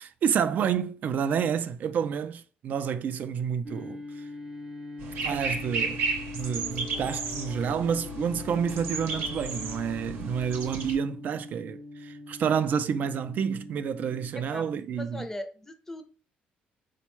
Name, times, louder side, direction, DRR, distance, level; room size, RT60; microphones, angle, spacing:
voice 1, 0.0-4.0 5.2-6.0 6.3-15.3, right 7 dB, 55° right, 0.4 m, -29 dB
sound 1, 3.6-14.3, left 2 dB, 25° right, 0.7 m, -42 dB
sound 2, 5.0-10.9, right 3 dB, 75° right, 0.8 m, -34 dB
sound 3, 6.6-11.7, left 4 dB, 85° left, 0.7 m, -49 dB
voice 2, 14.3-16.0, left 1 dB, 10° left, 0.5 m, -39 dB
4.3 x 2.2 x 3.0 m
cardioid pair, 120°, 3 cm